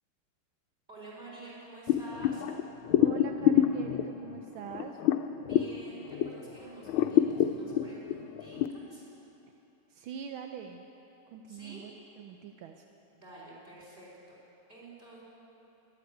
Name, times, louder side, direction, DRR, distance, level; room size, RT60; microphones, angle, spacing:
voice 1, 0.9-2.5 5.4-9.0 11.5-11.8 13.1-14.4 14.7-15.2, right 2 dB, 25° right, -6 dB, 4.5 m, -49 dB
sound 1, 1.9-6.5 6.8-8.7, left 11 dB, 80° left, 1.4 m, -27 dB
voice 2, 3.0-5.0 9.9-10.9 11.3-12.7, right 7 dB, 80° right, 5 dB, 1.5 m, -43 dB
12.5 x 11.5 x 9.2 m, 2.9 s
omnidirectional pair, 2.2 m